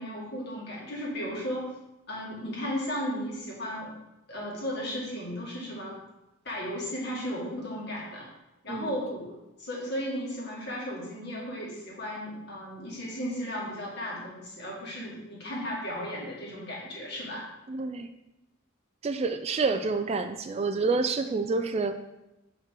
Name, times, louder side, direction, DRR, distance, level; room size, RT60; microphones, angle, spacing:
voice 1, 0.0-1.7 2.1-3.9 4.3-6.0 6.4-8.3 8.6-17.4, equal, 55° left, -4 dB, 2.1 m, -35 dB
voice 2, 8.7-9.0 17.7-18.1 19.0-22.0, right 4 dB, 30° right, 8 dB, 0.3 m, -28 dB
6.4 x 5.4 x 3.8 m, 0.93 s
head